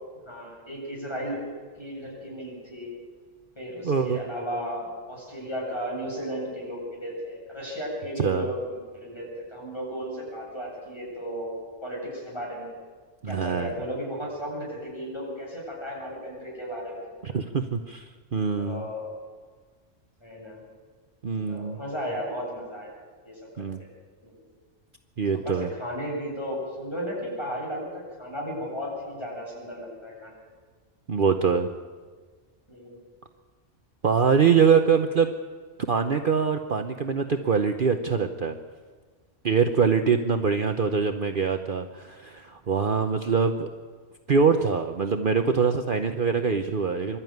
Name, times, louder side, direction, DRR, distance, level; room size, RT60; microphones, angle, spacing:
voice 1, 0.3-2.9 3.6-12.7 13.3-17.4 18.6-19.1 20.2-20.6 21.5-22.9 23.2-23.4 23.8-23.9 24.2-24.4 25.3-30.4 32.7-33.0, equal, 20° left, -4 dB, 8.1 m, -35 dB
voice 2, 3.8-4.2 8.2-8.5 13.2-13.7 17.2-18.8 21.2-21.8 23.6-23.8 25.2-25.7 31.1-31.7 34.0-35.3 35.9-38.6 39.4-43.7 44.3-47.2, right 6 dB, 50° right, 6 dB, 1.0 m, -24 dB
25.5 x 13.0 x 9.3 m, 1.5 s
omnidirectional pair, 1.2 m